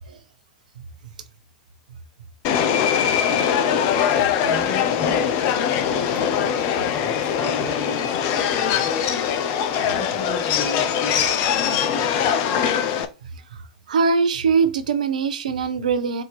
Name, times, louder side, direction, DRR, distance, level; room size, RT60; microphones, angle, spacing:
Subway metro underground, 2.4-13.0, left 8 dB, 45° left, 0.6 m, -22 dB
voice 1, 4.5-5.5 5.8-6.5 6.8-8.9 9.9-11.3 11.6-12.6, left 2 dB, 20° left, 2.0 m, -35 dB
voice 2, 13.9-16.2, right 5 dB, 70° right, 0.7 m, -22 dB
4.3 x 2.8 x 3.4 m
figure-of-eight pair, 95°, 4 cm